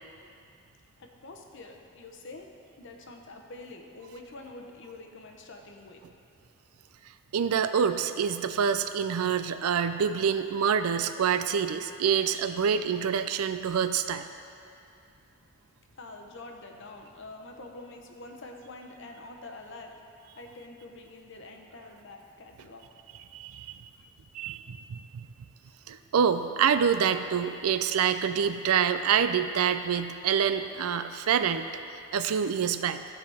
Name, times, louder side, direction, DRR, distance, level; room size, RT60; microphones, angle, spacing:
voice 1, 1.0-2.5 2.8-6.0 15.9-20.0 20.3-22.9 23.7-23.8, left 2 dB, 60° left, 3 dB, 0.8 m, -46 dB
voice 2, 7.3-14.3 23.3-23.8 24.3-25.3 25.9-31.6 32.1-33.0, right 7 dB, 85° right, 10 dB, 0.4 m, -26 dB
14.0 x 4.8 x 3.4 m, 2.6 s
head